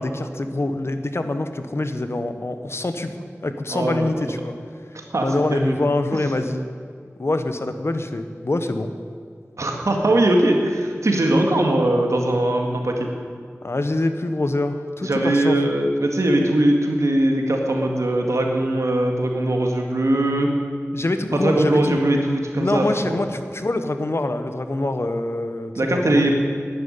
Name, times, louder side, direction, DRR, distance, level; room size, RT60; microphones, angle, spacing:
voice 1, 0.0-3.2 3.4-4.6 5.2-6.7 7.2-8.9 13.6-15.6 20.9-22.0 22.6-26.2, left 2 dB, 60° left, 8 dB, 1.1 m, -25 dB
voice 2, 3.7-4.2 4.9-5.2 5.5-5.9 9.6-13.1 15.0-20.5 21.3-23.2 25.8-26.3, right 1 dB, 90° right, 2 dB, 2.0 m, -20 dB
11.0 x 10.5 x 9.8 m, 2.1 s
wide cardioid pair, 50°, 5 cm